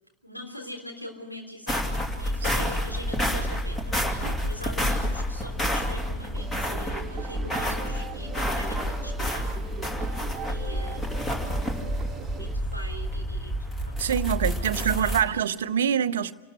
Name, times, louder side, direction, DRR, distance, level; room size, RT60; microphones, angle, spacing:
voice 1, 0.2-9.5 10.5-11.2 12.4-13.5 13.8-14.1 14.4-15.4, equal, 90° left, 2 dB, 3.5 m, -42 dB
sound 1, 1.7-15.2, equal, 15° left, 2.7 m, -29 dB
sound 2, 6.3-12.6, right 7 dB, 25° right, 1.5 m, -41 dB
voice 2, 14.0-16.3, right 8 dB, 60° right, 14 dB, 0.7 m, -25 dB
28.0 x 13.0 x 8.0 m, 1.3 s
figure-of-eight pair, 90°, 0 cm